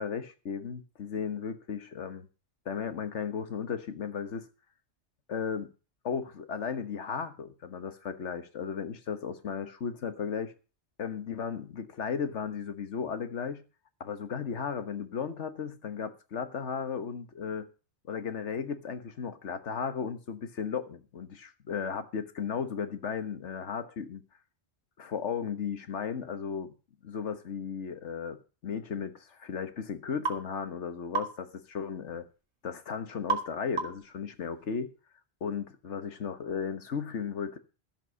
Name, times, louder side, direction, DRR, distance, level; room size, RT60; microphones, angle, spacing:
voice 1, 0.0-2.3 2.6-4.5 5.3-5.7 6.0-10.5 11.0-13.6 14.0-17.7 18.1-24.2 25.0-26.7 27.0-32.3 32.6-34.9 35.4-37.6, left 6 dB, 85° left, 1.6 m, -35 dB
sound 1, 30.3-30.4 31.1-31.4 33.3-33.5 33.8-34.1, right 4 dB, 75° right, 2.1 m, -30 dB
14.0 x 7.6 x 6.3 m
omnidirectional pair, 1.2 m